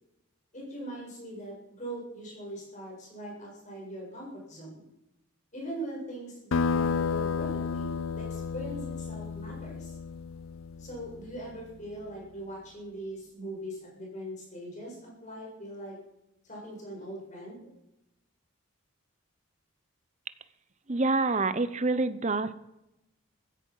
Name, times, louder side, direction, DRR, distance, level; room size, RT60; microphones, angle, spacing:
voice 1, 0.5-4.8 5.5-10.0 10.8-16.0 16.4-17.6, right 1 dB, 35° left, -3 dB, 7.5 m, -41 dB
sound 1, 6.5-11.6, left 5 dB, 80° left, 0.5 m, -32 dB
voice 2, 20.9-22.5, right 3 dB, 35° right, 14 dB, 0.8 m, -27 dB
16.0 x 15.5 x 5.6 m, 0.88 s
head